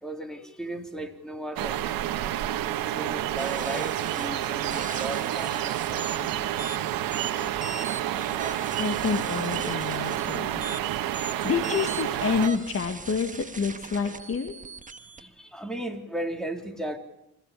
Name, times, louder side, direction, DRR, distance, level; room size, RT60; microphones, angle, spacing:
voice 1, 0.0-1.8 3.0-6.4 15.2-17.0, right 1 dB, ahead, 4 dB, 3.6 m, -36 dB
sound 1, 1.6-12.5, right 12 dB, 75° right, 1.7 m, -29 dB
sound 2, 3.4-15.2, right 4 dB, 20° right, 1.6 m, -40 dB
voice 2, 8.4-10.6 11.2-14.6, left 6 dB, 40° left, 6 dB, 2.1 m, -29 dB
26.5 x 15.5 x 8.5 m, 0.83 s
supercardioid pair, 70°, 35 cm